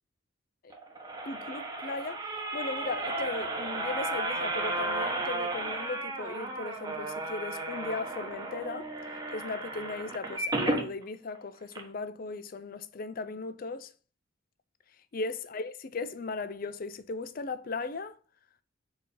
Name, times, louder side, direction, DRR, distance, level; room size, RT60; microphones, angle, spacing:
sound 1, 0.7-10.9 11.4-11.5 11.7-11.8, right 2 dB, 20° right, 1.0 m, -34 dB
voice 1, 1.2-2.2 2.5-8.9 9.3-13.9 15.1-18.2, left 3 dB, 45° left, 0.5 m, -37 dB
4.7 x 4.6 x 5.3 m
head